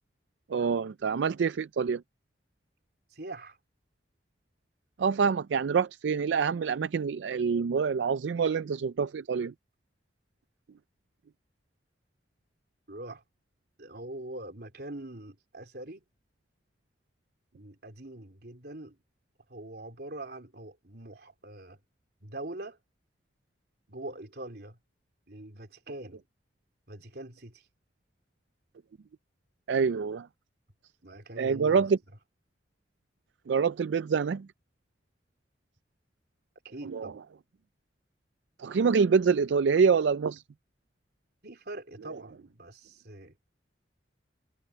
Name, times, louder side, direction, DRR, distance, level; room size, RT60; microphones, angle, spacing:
voice 1, 0.5-2.0 5.0-9.5 29.7-30.3 31.4-32.0 33.5-34.5 36.9-37.1 38.6-40.4, right 5 dB, 80° right, 0.4 m, -26 dB
voice 2, 3.1-3.6 12.9-13.2 13.8-16.0 17.5-19.0 19.5-21.8 22.2-22.8 23.9-24.8 25.3-26.2 26.9-27.7 31.0-31.9 36.6-37.2 41.4-43.4, right 1 dB, 60° right, 3.6 m, -43 dB
head